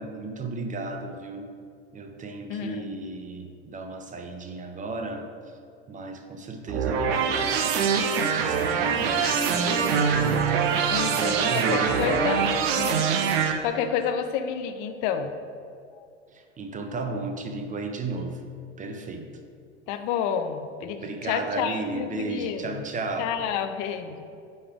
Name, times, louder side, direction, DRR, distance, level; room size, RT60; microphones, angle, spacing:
voice 1, 0.0-1.5 1.9-5.6 5.9-12.4 16.3-18.4 18.8-19.3 21.0-23.3, right 3 dB, 25° right, 5 dB, 0.6 m, -34 dB
voice 2, 2.5-2.9 10.9-12.4 12.8-15.3 16.0-16.1 19.9-22.8 23.2-24.2, left 8 dB, 50° left, 8 dB, 0.5 m, -30 dB
sound 1, 6.7-13.5, right 6 dB, 60° right, 0.7 m, -24 dB
9.3 x 3.4 x 3.5 m, 2.4 s
hypercardioid pair, 80°, 34 cm